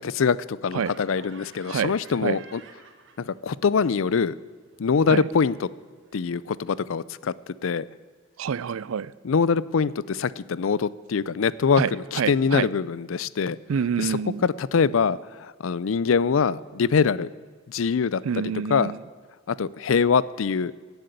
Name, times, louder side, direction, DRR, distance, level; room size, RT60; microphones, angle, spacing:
voice 1, 0.0-2.6 3.2-4.4 4.8-5.7 6.1-7.3 7.6-7.9 9.2-13.6 14.0-17.3 17.7-18.2 18.7-18.9 19.5-20.7, left 5 dB, 70° left, 0.4 m, -24 dB
Laughter, 0.8-3.6 3.9-6.8, right 4 dB, 65° right, 1.6 m, -52 dB
voice 2, 8.4-9.1 11.8-11.9 12.2-12.7 13.7-14.4 18.2-19.0, right 7 dB, 80° right, 0.4 m, -27 dB
16.5 x 8.0 x 9.3 m
head